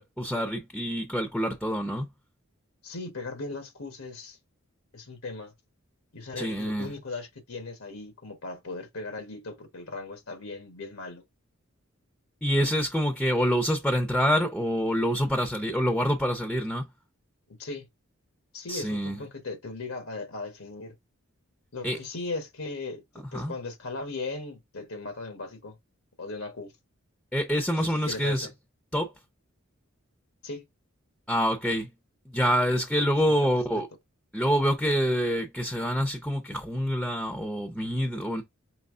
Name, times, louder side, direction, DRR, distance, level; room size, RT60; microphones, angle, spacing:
voice 1, 0.0-2.1 6.4-6.9 12.4-16.9 18.7-19.2 21.8-22.0 23.3-23.5 27.3-28.5 28.9-29.1 31.3-31.9 32.3-33.9 34.3-38.4, equal, 5° left, 0.6 m, -26 dB
voice 2, 2.8-4.4 4.9-5.5 6.1-11.2 17.5-17.9 18.5-20.9 21.7-25.8 26.2-26.7 27.8-28.5 30.4-30.6 33.2-33.3 33.7-33.8, left 3 dB, 85° left, 1.2 m, -38 dB
5.4 x 3.0 x 2.5 m
head